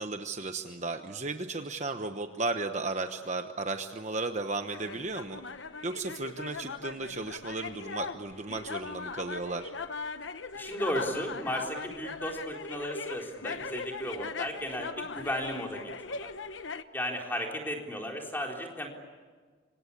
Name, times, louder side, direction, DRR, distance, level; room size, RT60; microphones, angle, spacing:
voice 1, 0.0-5.4 5.8-9.7, right 3 dB, 35° right, 7 dB, 1.1 m, -34 dB
sound 1, 4.7-16.8, left 4 dB, 70° left, 1.0 m, -40 dB
voice 2, 10.5-16.3 16.9-18.9, equal, 10° left, 1 dB, 4.0 m, -35 dB
26.0 x 26.0 x 8.5 m, 1.5 s
head